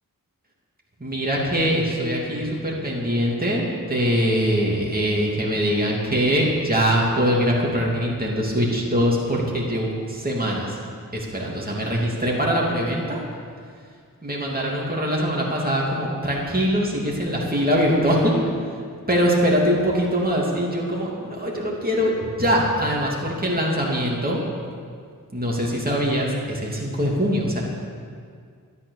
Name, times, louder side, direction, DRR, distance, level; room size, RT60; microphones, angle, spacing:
voice 1, 1.0-10.8 11.1-13.2 14.2-18.4 19.1-24.4 25.3-27.6, equal, 25° right, -4 dB, 2.9 m, -22 dB
13.0 x 11.0 x 6.7 m, 2.1 s
wide cardioid pair, 55°, 35 cm